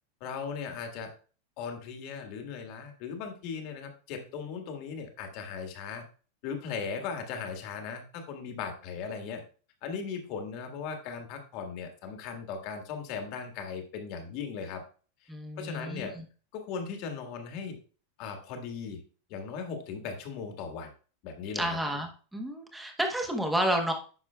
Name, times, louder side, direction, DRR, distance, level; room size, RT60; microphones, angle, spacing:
voice 1, 0.2-1.1 1.6-6.0 6.4-9.4 9.8-14.8 15.6-16.2 16.5-17.8 18.2-19.0 19.3-20.9 21.2-21.8, left 6 dB, 40° left, 4 dB, 1.5 m, -38 dB
voice 2, 15.3-16.2 21.5-23.9, right 1 dB, 5° right, 3 dB, 1.0 m, -31 dB
9.9 x 6.1 x 2.3 m, 0.38 s
supercardioid pair, 170°, 0 cm